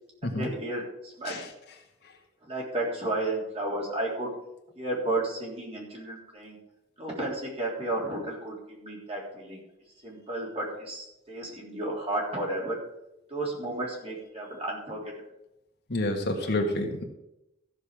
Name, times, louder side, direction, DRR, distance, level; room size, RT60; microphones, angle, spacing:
voice 1, 0.2-1.4 2.4-4.3 4.8-6.6 7.0-9.6 10.0-12.8 13.3-15.0, right 2 dB, 35° right, -3 dB, 3.5 m, -32 dB
voice 2, 15.9-17.0, left 1 dB, 55° left, 2 dB, 1.7 m, -28 dB
15.0 x 6.9 x 5.1 m, 0.88 s
head